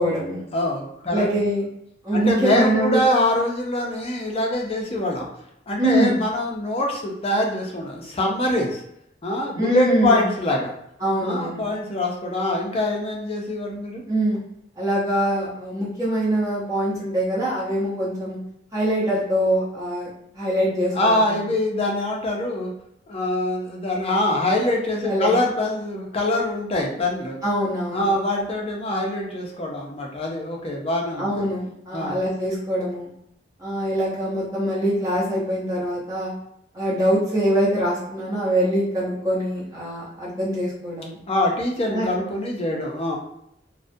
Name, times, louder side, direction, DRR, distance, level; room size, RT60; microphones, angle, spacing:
voice 1, 0.0-0.4 1.1-1.6 2.0-3.1 5.8-6.2 9.6-10.2 11.0-11.6 14.1-14.4 14.8-18.4 18.7-20.1 20.3-21.4 25.0-25.3 27.4-28.1 31.2-33.1 33.6-36.3 36.7-41.2 41.9-42.1, equal, 20° right, -8 dB, 0.8 m, -23 dB
voice 2, 0.5-1.3 2.1-5.3 5.7-8.8 9.2-10.7 11.2-14.0 20.9-22.7 23.1-27.4 27.9-31.4 31.9-32.2 41.3-43.2, left 1 dB, 30° left, 0 dB, 0.5 m, -24 dB
2.3 x 2.1 x 2.6 m, 0.74 s
head